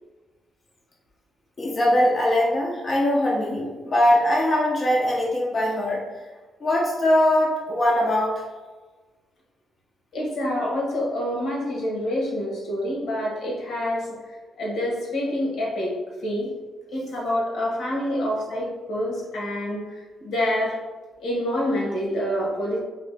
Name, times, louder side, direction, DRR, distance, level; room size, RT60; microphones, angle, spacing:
voice 1, 1.6-6.0 6.6-8.4, left 1 dB, 30° left, -4 dB, 0.7 m, -21 dB
voice 2, 10.1-15.9 16.2-16.5 16.9-20.8 21.2-22.8, left 1 dB, 80° left, -3 dB, 1.4 m, -27 dB
3.9 x 3.0 x 3.4 m, 1.3 s
cardioid pair, 115°, 0 cm